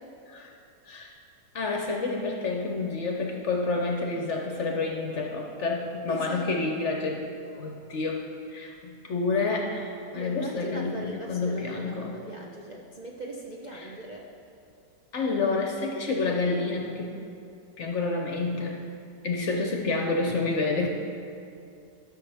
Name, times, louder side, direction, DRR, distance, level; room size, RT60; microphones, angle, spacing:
voice 1, 1.5-7.2 7.5-8.2 8.5-12.2 13.7-13.9 15.1-17.2 17.8-18.8 19.2-20.9, left 3 dB, 55° left, 2 dB, 0.8 m, -29 dB
voice 2, 6.1-6.5 10.1-14.3 19.5-19.6, right 1 dB, 60° right, -1 dB, 0.4 m, -39 dB
14.0 x 6.5 x 3.4 m, 2.6 s
omnidirectional pair, 1.8 m